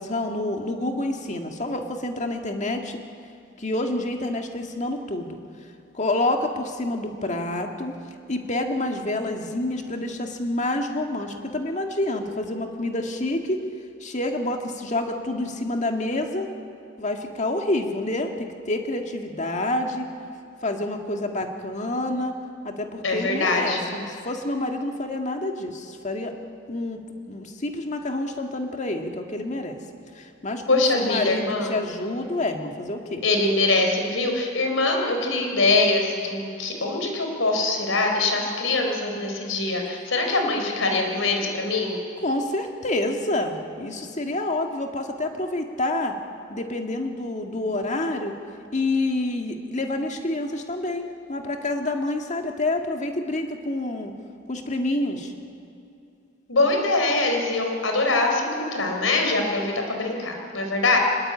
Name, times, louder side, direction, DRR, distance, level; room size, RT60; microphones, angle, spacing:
voice 1, 0.0-3.0 3.6-5.4 5.9-8.0 8.3-13.6 14.0-16.5 17.0-20.1 20.6-22.4 22.6-26.3 26.7-27.0 27.3-29.8 30.2-33.2 42.2-46.1 46.5-48.3 48.7-54.1 54.5-55.3, left 2 dB, 40° left, 4 dB, 1.9 m, -28 dB
voice 2, 23.0-23.9 30.7-31.7 33.2-42.0 56.5-61.0, left 2 dB, 85° left, 2 dB, 4.2 m, -23 dB
24.0 x 21.0 x 8.8 m, 2.5 s
head